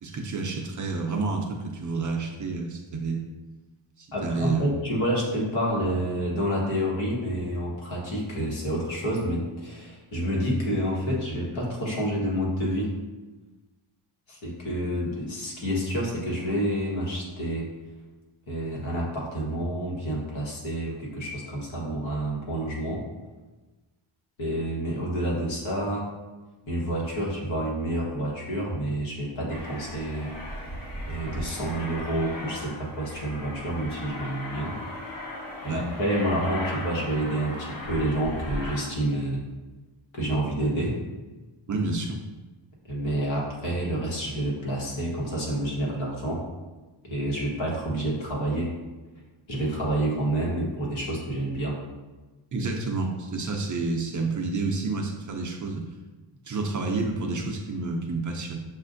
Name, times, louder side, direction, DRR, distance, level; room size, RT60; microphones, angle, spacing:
voice 1, 0.0-3.2 4.0-4.7 35.6-35.8 41.7-42.2 52.5-55.9 56.5-58.6, right 3 dB, 40° right, 1 dB, 0.4 m, -29 dB
voice 2, 4.1-13.0 14.3-17.7 18.5-23.0 24.4-26.1 26.7-30.6 31.1-34.8 35.6-39.4 40.1-41.0 42.9-46.4 47.0-48.8 49.5-51.8, right 1 dB, 70° left, -4 dB, 1.3 m, -28 dB
Aircraft, 29.5-38.8, left 1 dB, 45° left, 1.4 m, -37 dB
6.5 x 2.5 x 2.5 m, 1.2 s
wide cardioid pair, 150°, 48 cm